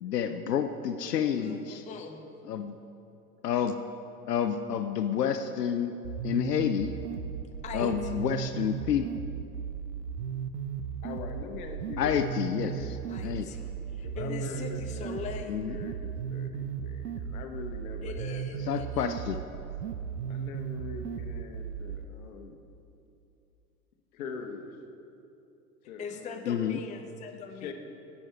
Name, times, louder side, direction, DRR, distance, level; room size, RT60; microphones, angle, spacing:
voice 1, 0.0-1.8 2.5-2.8 3.4-3.7 4.3-5.9 6.2-7.0 7.7-9.1 12.0-13.0 13.2-13.5 15.5-15.8 18.7-19.4 26.5-26.8, left 8 dB, 80° left, 8 dB, 0.6 m, -29 dB
voice 2, 1.2-2.3 7.6-8.3 13.1-15.5 18.0-19.1 26.0-27.7, left 5 dB, 15° left, 5 dB, 0.6 m, -41 dB
sound 1, 6.0-22.0, right 7 dB, 80° right, 0.6 m, -36 dB
voice 3, 11.0-13.8 14.0-18.7 20.3-22.6 24.1-24.7 25.9-26.5 27.6-27.7, left 5 dB, 60° left, 6 dB, 1.1 m, -43 dB
10.5 x 8.4 x 4.5 m, 2.8 s
figure-of-eight pair, 80°, 47 cm